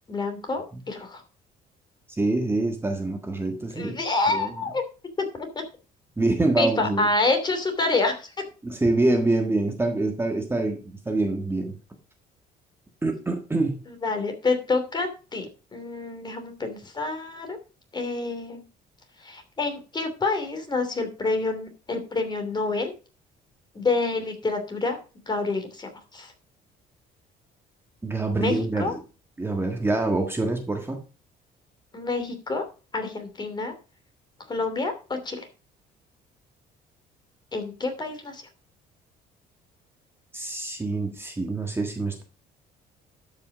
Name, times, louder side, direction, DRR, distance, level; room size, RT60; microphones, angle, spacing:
voice 1, 0.1-1.2 3.8-4.8 6.6-8.4 13.9-15.4 15.7-17.6 17.9-18.6 19.2-22.9 23.7-25.0 25.3-26.3 28.4-28.9 31.9-32.6 32.9-33.7 34.5-35.5 37.5-38.4, left 3 dB, 25° left, 6 dB, 2.8 m, -27 dB
voice 2, 2.2-4.0 4.3-4.6 6.2-7.1 8.6-11.7 13.0-13.8 28.0-29.0 29.4-31.0 40.3-42.2, right 2 dB, 15° right, 3 dB, 1.5 m, -25 dB
12.0 x 5.7 x 5.0 m, 0.34 s
cardioid pair, 110°, 17 cm